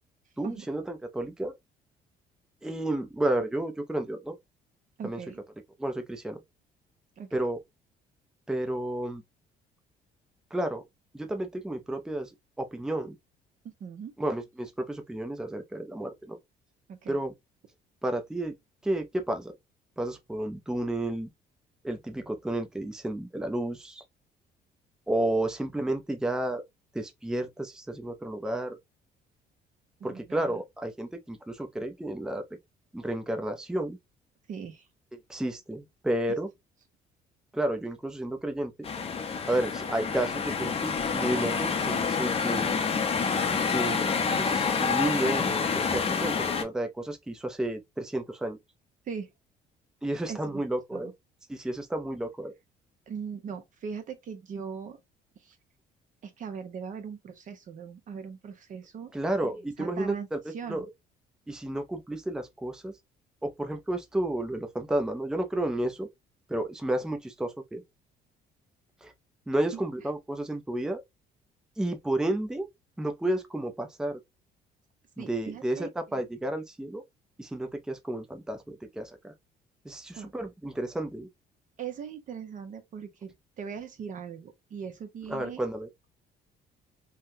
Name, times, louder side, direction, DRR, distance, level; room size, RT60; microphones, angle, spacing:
voice 1, 0.4-1.5 2.6-4.4 5.0-5.2 5.8-6.4 7.3-7.6 8.5-9.2 10.5-10.8 11.1-12.3 12.6-13.1 14.2-16.4 17.1-17.3 18.0-18.5 18.8-19.5 20.0-21.3 21.8-24.0 25.1-26.6 26.9-28.8 30.0-32.4 32.9-34.0 35.3-36.5 37.5-38.7 39.5-42.9 43.7-48.6 50.0-51.1 51.5-52.5 59.1-60.4 60.7-60.9 61.5-62.9 63.4-66.1 66.5-67.8 69.0-69.1 69.5-71.0 71.8-72.7 73.0-74.2 75.2-77.0 77.4-79.3 79.8-81.3 85.3-85.9, right 1 dB, 5° right, 0.5 m, -31 dB
voice 2, 5.0-5.4 7.2-7.4 13.6-14.1 16.9-17.2 30.0-30.6 34.5-34.9 49.1-49.3 50.3-50.6 50.9-51.1 53.1-55.0 55.4-55.6 56.2-59.1 59.4-59.5 59.8-60.3 60.5-60.9 69.7-69.8 75.2-75.9 80.2-80.3 81.8-85.6, right 6 dB, 50° right, 0.9 m, -40 dB
sound 1, 38.8-46.6, left 5 dB, 35° left, 0.7 m, -28 dB
3.5 x 2.2 x 2.7 m
cardioid pair, 110°, 17 cm